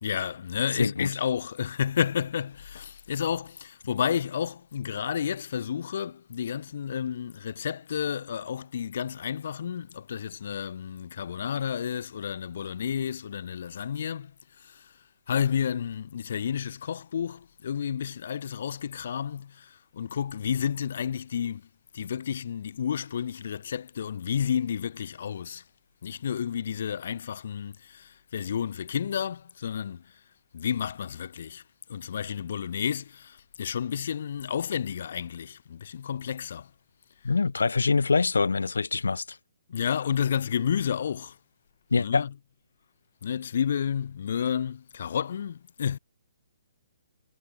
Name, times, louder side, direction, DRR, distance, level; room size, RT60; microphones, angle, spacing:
voice 1, 0.0-14.3 14.6-14.9 15.3-21.7 21.9-25.6 26.0-30.2 30.5-31.6 31.9-36.7 39.7-41.4 42.0-42.3 43.2-46.0, left 8 dB, 60° left, 1.6 m, -31 dB
voice 2, 0.8-1.1 37.2-39.4 41.9-42.3, left 4 dB, 90° left, 0.9 m, -24 dB
hypercardioid pair, 145°, 0 cm